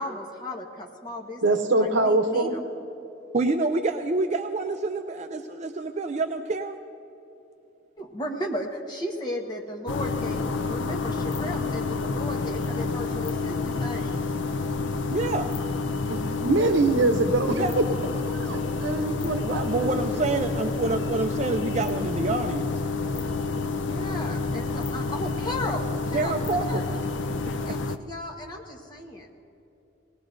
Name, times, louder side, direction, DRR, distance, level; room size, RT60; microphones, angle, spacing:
voice 1, 0.0-1.4 1.8-2.6 8.0-14.2 23.8-26.9 27.7-29.3, left 1 dB, 25° left, 1.2 m, -35 dB
voice 2, 1.4-2.5 16.1-17.6 18.3-20.2, right 2 dB, 80° right, 0.8 m, -24 dB
voice 3, 3.3-6.8 15.1-15.5 17.5-17.7 19.4-22.7 26.1-26.8 27.6-27.7, right 3 dB, 35° right, 0.4 m, -27 dB
sound 1, 9.9-28.0, left 3 dB, 85° left, 0.5 m, -29 dB
19.0 x 19.0 x 2.6 m
head